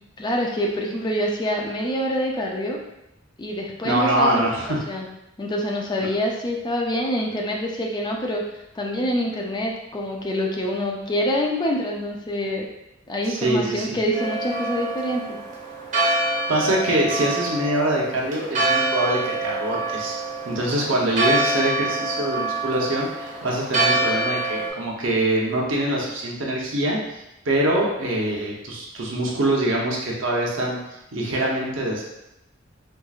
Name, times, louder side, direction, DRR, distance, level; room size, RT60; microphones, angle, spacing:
voice 1, 0.2-2.8 3.4-4.4 4.9-5.1 5.4-8.4 8.7-12.7 13.1-15.4, equal, 20° left, -1 dB, 0.4 m, -26 dB
voice 2, 3.8-4.8 13.2-14.0 16.5-20.2 20.4-30.8 31.1-32.0, right 1 dB, 75° right, -3 dB, 0.8 m, -24 dB
Church bell, 14.1-24.7, right 2 dB, 40° right, 0.8 m, -26 dB
4.5 x 2.5 x 2.4 m, 0.90 s
head